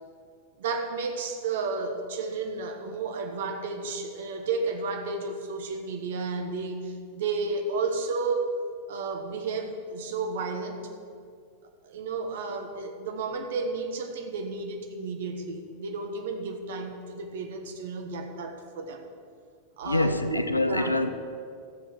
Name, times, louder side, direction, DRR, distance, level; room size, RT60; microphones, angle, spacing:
voice 1, 0.6-8.5 8.9-10.9 11.8-19.1 19.8-21.0, right 4 dB, 55° right, 1.4 m, -32 dB
voice 2, 19.8-21.1, left 2 dB, 85° left, 0.7 m, -25 dB
13.5 x 7.1 x 6.6 m
figure-of-eight pair, 90°, 0 cm